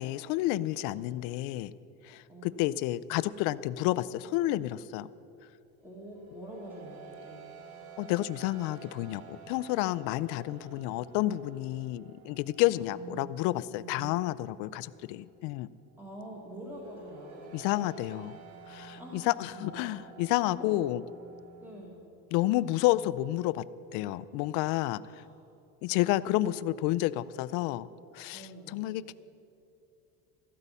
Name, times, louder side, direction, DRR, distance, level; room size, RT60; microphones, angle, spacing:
voice 1, 0.0-1.7 2.0-5.1 8.0-15.7 17.5-18.4 18.7-21.0 22.3-23.7 23.9-25.2 25.8-27.9 28.1-28.4 28.7-29.1, left 16 dB, 60° left, 16 dB, 0.5 m, -30 dB
voice 2, 2.3-2.8 5.8-7.4 10.7-10.8 12.7-13.3 13.8-14.3 16.0-17.9 19.0-20.0 20.5-20.8 21.6-22.0 25.0-25.3 28.3-28.9, right 1 dB, 5° right, -3 dB, 1.6 m, -46 dB
sound 1, 5.4-21.7, right 5 dB, 60° right, 1.8 m, -52 dB
14.5 x 12.5 x 5.5 m, 2.8 s
cardioid pair, 165°, 34 cm